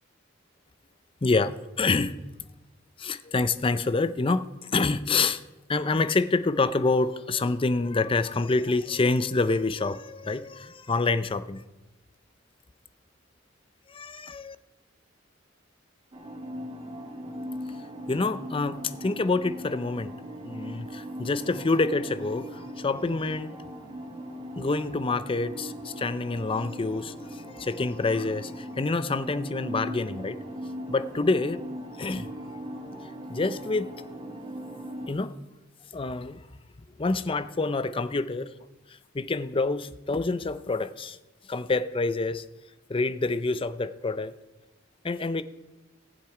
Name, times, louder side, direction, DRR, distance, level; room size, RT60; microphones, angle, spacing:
voice 1, 1.2-2.2 3.0-5.4 5.7-11.6 13.9-14.6 18.1-20.1 20.4-23.6 24.6-30.4 30.9-31.6 32.0-32.3 33.3-33.9 35.1-35.3 35.9-36.4 37.0-38.5 39.1-41.2 41.5-42.4 42.9-44.3 45.0-45.4, left 3 dB, 25° left, 13 dB, 0.5 m, -27 dB
sound 1, 16.1-35.1, equal, 25° right, 1.6 m, -39 dB
18.5 x 7.4 x 4.9 m, 1.1 s
head